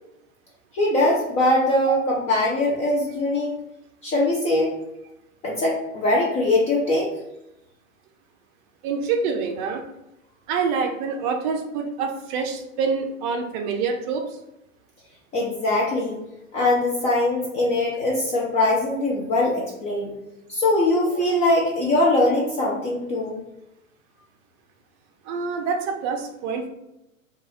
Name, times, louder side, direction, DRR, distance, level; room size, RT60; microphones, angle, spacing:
voice 1, 0.7-3.6 4.0-4.7 5.4-7.1 15.3-16.2 16.5-20.1 20.5-23.4, left 1 dB, 15° left, -4 dB, 0.4 m, -22 dB
voice 2, 8.8-9.9 10.5-14.4 25.3-26.7, right 5 dB, 35° right, 3 dB, 0.5 m, -26 dB
3.1 x 2.4 x 3.8 m, 0.88 s
hypercardioid pair, 105°, 41 cm